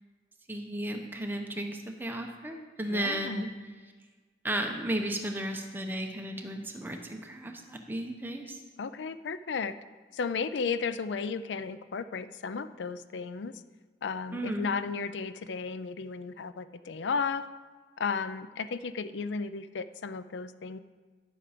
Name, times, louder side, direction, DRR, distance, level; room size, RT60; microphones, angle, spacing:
voice 1, 0.5-3.5 4.4-8.6 14.3-14.7, right 1 dB, 10° right, 3 dB, 0.9 m, -34 dB
voice 2, 2.9-3.5 8.8-9.7 10.1-13.5 14.0-17.5 18.0-20.8, left 5 dB, 80° left, 13 dB, 0.4 m, -34 dB
11.0 x 7.6 x 5.1 m, 1.4 s
head